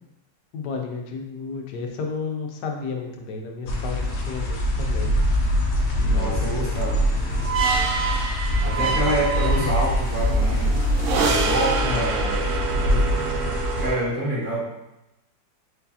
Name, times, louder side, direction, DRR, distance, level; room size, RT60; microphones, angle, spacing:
voice 1, 0.5-5.1 6.0-6.4 8.7-9.7 11.8-12.0 12.9-13.1, left 5 dB, 75° left, 2 dB, 1.2 m, -32 dB
sound 1, 3.7-13.9, equal, 60° left, 0.7 m, -24 dB
voice 2, 6.0-7.0 8.6-10.8 11.1-12.5 13.8-14.6, right 1 dB, 40° right, -7 dB, 0.8 m, -27 dB
sound 2, 6.8-14.1, right 5 dB, 70° right, 0.7 m, -27 dB
4.6 x 4.0 x 2.7 m, 0.92 s
omnidirectional pair, 1.8 m